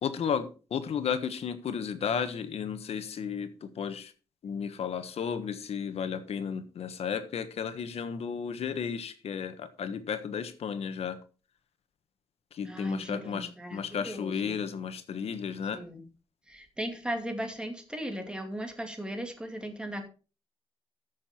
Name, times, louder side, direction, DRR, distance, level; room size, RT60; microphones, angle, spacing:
voice 1, 0.0-4.1 4.4-11.2 12.5-15.8, left 7 dB, 75° left, 11 dB, 1.4 m, -33 dB
voice 2, 12.6-14.6 15.7-16.0 16.5-20.0, right 1 dB, 10° right, 4 dB, 2.5 m, -37 dB
14.0 x 6.8 x 4.4 m, 0.34 s
wide cardioid pair, 135°, 11 cm